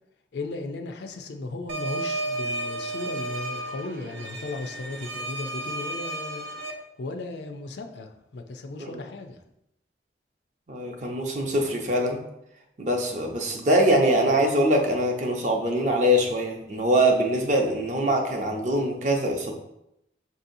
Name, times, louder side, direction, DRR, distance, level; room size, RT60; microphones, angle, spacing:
voice 1, 0.3-6.5 7.0-9.4, left 3 dB, 70° left, 5 dB, 0.4 m, -36 dB
sound 1, 1.7-6.7, right 2 dB, 90° right, 0.5 m, -33 dB
voice 2, 10.7-12.2 12.8-19.5, right 1 dB, 40° right, 2 dB, 0.6 m, -23 dB
6.0 x 2.7 x 2.6 m, 0.82 s
head